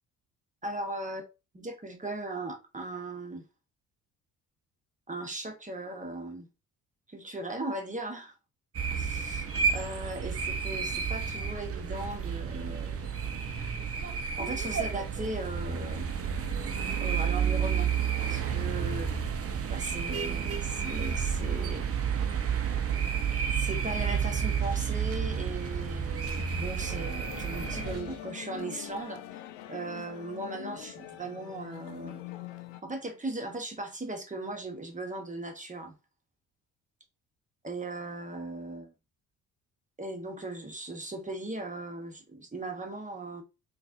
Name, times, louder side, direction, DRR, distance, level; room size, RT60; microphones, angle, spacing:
voice 1, 0.6-1.2 1.5-3.4 5.1-6.5 7.1-8.3 8.9-13.1 14.4-16.1 17.0-17.9 18.2-19.1 19.7-21.8 23.6-29.4 29.7-32.2 32.8-36.0 37.6-38.9 40.0-43.4, right 2 dB, 20° right, 1.1 m, -38 dB
sound 1, 8.7-28.0, right 7 dB, 40° right, 0.7 m, -31 dB
sound 2, 24.4-27.3 27.6-29.0, equal, 40° left, 1.6 m, -49 dB
sound 3, 26.8-32.8, left 13 dB, 90° left, 0.5 m, -43 dB
3.9 x 2.4 x 2.6 m
hypercardioid pair, 55°, 36 cm